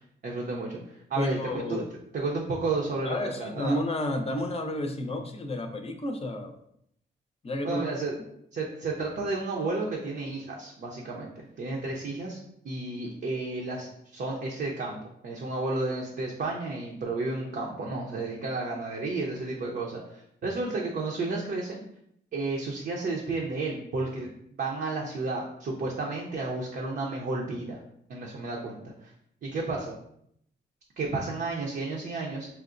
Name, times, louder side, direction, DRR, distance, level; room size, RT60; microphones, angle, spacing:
voice 1, 0.0-1.8 2.1-3.8 7.6-8.1 8.5-12.4 12.6-21.8 22.3-24.3 24.6-27.8 28.1-29.1 29.4-29.9 31.0-32.5, right 3 dB, 60° right, -3 dB, 0.7 m, -32 dB
voice 2, 1.2-1.9 3.0-6.5 7.4-7.8, left 1 dB, 35° left, 5 dB, 0.5 m, -31 dB
5.6 x 2.1 x 2.5 m, 0.73 s
cardioid pair, 90°, 19 cm